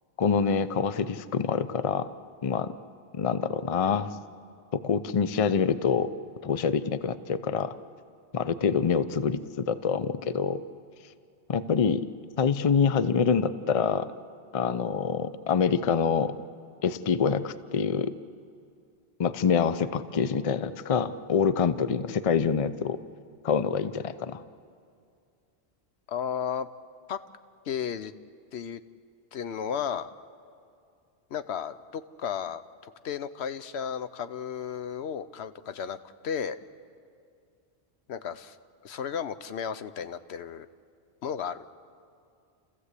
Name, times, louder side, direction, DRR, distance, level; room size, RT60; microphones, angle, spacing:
voice 1, 0.2-2.1 2.4-2.7 3.1-4.1 4.7-6.1 6.4-7.7 8.3-10.6 11.5-12.1 12.4-14.1 14.5-16.4 16.8-18.1 19.2-23.0 23.4-24.4, left 6 dB, 40° left, 13 dB, 0.6 m, -26 dB
voice 2, 26.1-26.7 27.1-27.2 27.7-28.1 28.5-28.8 29.3-30.1 31.3-36.0 36.2-36.6 38.1-38.6 38.8-40.7 41.2-41.6, left 8 dB, 80° left, 12 dB, 1.0 m, -34 dB
29.5 x 14.5 x 8.2 m, 2.3 s
omnidirectional pair, 1.1 m